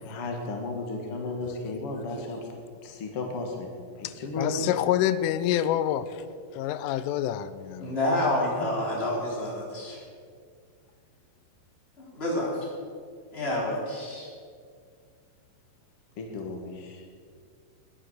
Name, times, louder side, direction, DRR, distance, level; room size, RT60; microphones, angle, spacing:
voice 1, 0.0-2.4 2.8-3.7 3.9-4.7 16.2-17.1, left 2 dB, 60° left, 1 dB, 1.5 m, -34 dB
voice 2, 4.0-6.2 6.5-8.0, left 11 dB, 90° left, 14 dB, 3.2 m, -27 dB
voice 3, 7.8-10.0 12.0-12.7 13.3-14.3, left 1 dB, 15° left, -3 dB, 3.4 m, -28 dB
21.5 x 9.1 x 6.5 m, 2.1 s
omnidirectional pair, 5.6 m